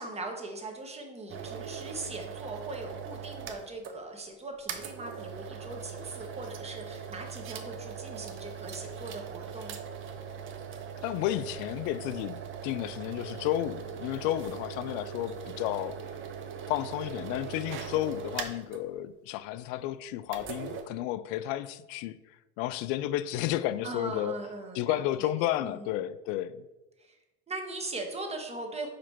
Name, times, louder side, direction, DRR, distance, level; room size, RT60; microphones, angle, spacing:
voice 1, 0.0-9.8 23.8-25.3 25.6-26.0 27.0-27.2 27.5-28.9, right 2 dB, 20° right, 1.2 m, -40 dB
sound 1, 1.3-4.0 4.3-4.4 4.7-18.8 20.3-20.8, right 7 dB, 40° right, 0.7 m, -40 dB
voice 2, 11.0-16.0 16.7-22.2 22.6-24.4 24.7-26.6, left 13 dB, 60° left, 0.4 m, -32 dB
5.0 x 4.2 x 4.5 m
supercardioid pair, 95°, 32 cm